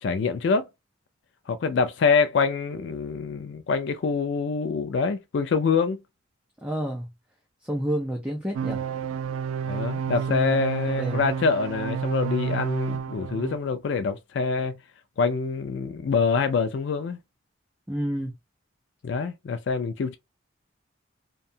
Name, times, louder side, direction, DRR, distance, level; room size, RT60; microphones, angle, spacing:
voice 1, 0.0-0.6 1.5-6.0 9.7-14.8 15.2-17.2 19.0-20.2, left 5 dB, 65° left, 0.3 m, -25 dB
voice 2, 6.6-7.1 7.7-8.8 10.3-10.5 10.8-11.2 17.9-18.3, right 1 dB, 5° right, 0.4 m, -29 dB
sound 1, 8.5-13.6, right 7 dB, 85° right, 0.3 m, -30 dB
2.7 x 2.2 x 2.6 m
head